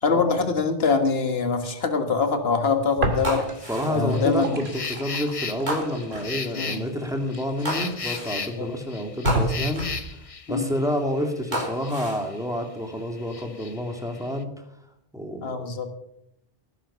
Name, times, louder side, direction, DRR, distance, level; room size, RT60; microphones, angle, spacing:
voice 1, 0.0-3.4 3.9-4.6 6.6-6.8 8.6-8.7 10.5-10.7 15.4-15.9, left 4 dB, 75° left, 7 dB, 1.8 m, -24 dB
sound 1, 3.0-3.8 4.1-8.0 8.6-8.7 9.2-10.1, right 1 dB, 85° right, 2.5 m, -30 dB
sound 2, 3.1-12.6 12.9-14.4, left 5 dB, 35° left, 0.9 m, -37 dB
sound 3, 3.2-4.3 5.7-6.4 7.7-8.5 9.3-10.0 11.5-12.3 13.0-13.4, equal, 50° right, 3.9 m, -32 dB
voice 2, 3.7-9.8 10.5-14.5 15.1-15.7, equal, 5° right, 4 dB, 2.3 m, -29 dB
18.0 x 10.5 x 5.7 m, 0.76 s
omnidirectional pair, 1.0 m